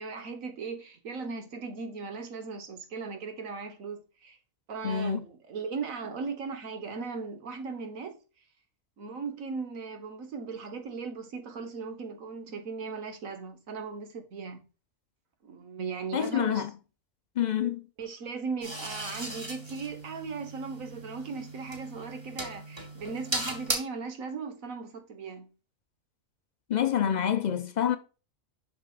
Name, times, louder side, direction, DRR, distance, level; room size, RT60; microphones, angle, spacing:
voice 1, 0.0-4.4 4.7-8.2 9.0-14.6 15.4-16.6 18.0-25.5, right 5 dB, 85° right, 1.6 m, -38 dB
voice 2, 4.8-5.2 16.1-16.7 17.4-17.9 26.7-28.0, left 9 dB, 55° left, 0.5 m, -27 dB
sound 1, 18.6-23.7, right 1 dB, 20° right, 1.9 m, -37 dB
7.1 x 6.1 x 2.4 m
omnidirectional pair, 1.4 m